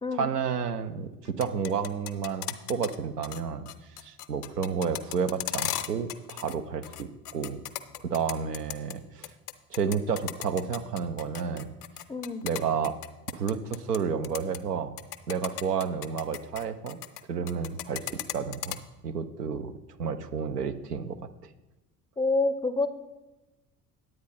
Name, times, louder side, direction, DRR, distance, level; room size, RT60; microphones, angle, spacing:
voice 1, 0.1-3.7 4.0-7.6 8.0-9.3 9.7-11.7 12.4-13.0 13.3-14.9 15.3-17.0 17.3-19.7 20.0-21.2, right 6 dB, 85° right, 10 dB, 0.6 m, -31 dB
sound 1, 1.3-3.0 3.2-3.4 3.7-6.6 6.8-8.9 9.2-14.0 14.2-14.6 15.0-17.2 17.5-18.8, left 13 dB, 75° left, 0.6 m, -36 dB
voice 2, 12.1-12.5 22.2-22.9, left 3 dB, 10° left, 10 dB, 0.5 m, -27 dB
9.5 x 8.7 x 3.9 m, 1.0 s
figure-of-eight pair, 60°, 46 cm